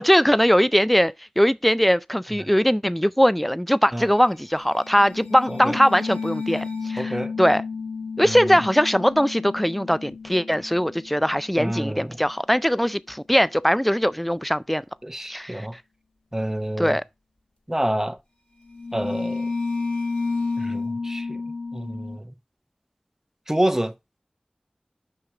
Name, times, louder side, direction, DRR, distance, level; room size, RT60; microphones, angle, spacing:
voice 1, 0.0-7.6 8.2-14.8 15.3-15.7 16.8-17.0, equal, 5° left, 0.4 m, -21 dB
sound 1, 4.6-12.2 18.7-22.2, left 4 dB, 50° left, 2.7 m, -31 dB
voice 2, 7.0-7.3 11.6-12.2 15.0-15.7 16.3-17.0 17.7-18.2 18.9-19.5 20.6-21.4 21.7-22.3 23.5-23.9, right 1 dB, 15° right, 0.8 m, -28 dB
5.9 x 5.9 x 4.8 m
wide cardioid pair, 45°, 3 cm